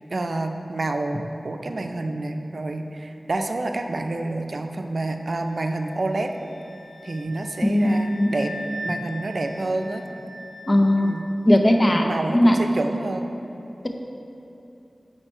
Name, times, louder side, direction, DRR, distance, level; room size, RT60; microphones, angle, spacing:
voice 1, 0.1-6.3 7.0-8.5 8.8-10.0 11.0-11.3 12.0-13.3, right 2 dB, 70° right, 5 dB, 0.4 m, -28 dB
sound 1, 5.1-11.9, equal, 65° left, 1.6 m, -41 dB
voice 2, 7.6-8.3 10.7-11.1 11.4-12.0 12.3-12.6, left 1 dB, 40° left, 3 dB, 0.7 m, -18 dB
8.9 x 4.4 x 4.4 m, 2.9 s
cardioid pair, 40°, 0 cm